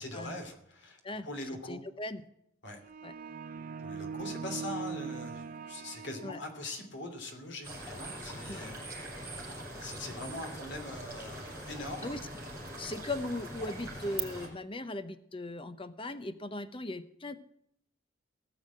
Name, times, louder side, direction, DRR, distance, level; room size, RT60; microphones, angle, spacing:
voice 1, 0.0-1.8 2.6-2.8 3.8-8.8 9.1-12.1, left 2 dB, 55° left, 5 dB, 3.0 m, -42 dB
voice 2, 1.6-2.2 3.0-3.1 6.2-6.4 8.5-8.6 9.7-9.8 12.0-12.2 12.8-17.4, left 2 dB, 25° left, 11 dB, 0.8 m, -38 dB
sound 1, 2.8-6.8, right 5 dB, 40° right, 0.5 m, -41 dB
sound 2, 4.2-14.2, right 18 dB, 70° right, 2.9 m, -51 dB
sound 3, 7.6-14.5, right 1 dB, 10° right, 5.6 m, -43 dB
18.0 x 7.2 x 7.5 m, 0.73 s
head